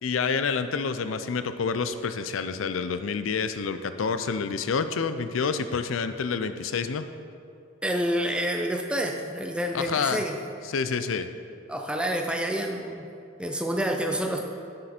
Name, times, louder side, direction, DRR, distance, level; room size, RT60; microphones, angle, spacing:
voice 1, 0.0-7.1 9.7-10.2 10.7-11.3, left 5 dB, 80° left, 10 dB, 0.5 m, -28 dB
voice 2, 7.8-10.4 11.7-13.1 13.4-14.4, equal, 5° right, 3 dB, 0.5 m, -28 dB
9.1 x 7.5 x 4.3 m, 2.5 s
head